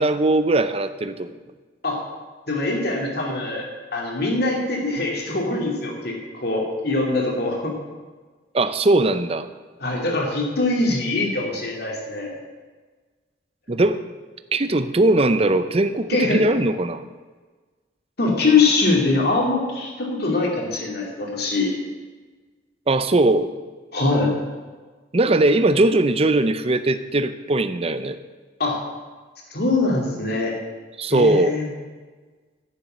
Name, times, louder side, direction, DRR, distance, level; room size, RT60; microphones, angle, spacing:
voice 1, 0.0-1.4 8.5-9.5 13.7-14.0 14.5-17.0 22.9-23.5 25.1-28.2 31.0-31.6, right 2 dB, 30° right, 11 dB, 0.6 m, -20 dB
voice 2, 2.5-7.8 9.8-12.4 16.1-16.4 18.2-21.7 23.9-24.3 28.6-28.8 29.5-30.6 31.1-31.7, left 3 dB, 60° left, 0 dB, 2.7 m, -23 dB
10.5 x 7.1 x 8.8 m, 1.4 s
head